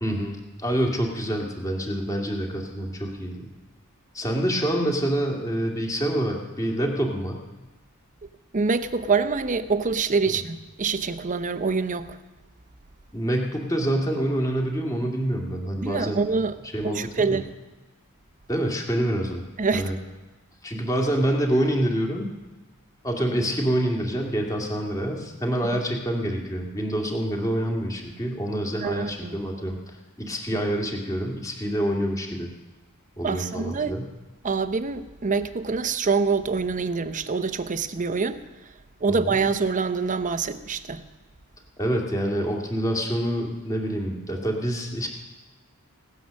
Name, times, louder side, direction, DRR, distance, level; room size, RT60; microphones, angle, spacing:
voice 1, 0.0-3.5 4.1-7.4 13.1-16.2 16.7-17.4 18.5-19.4 19.7-19.9 20.6-22.3 23.0-29.8 30.2-32.5 33.2-34.0 39.1-39.4 41.8-45.1, right 1 dB, 15° left, 2.0 m, -26 dB
voice 2, 8.5-12.2 15.8-17.5 19.6-19.9 28.8-29.4 33.2-34.0 34.4-38.4 39.0-41.0, right 4 dB, 35° right, 0.7 m, -25 dB
17.0 x 9.6 x 6.4 m
head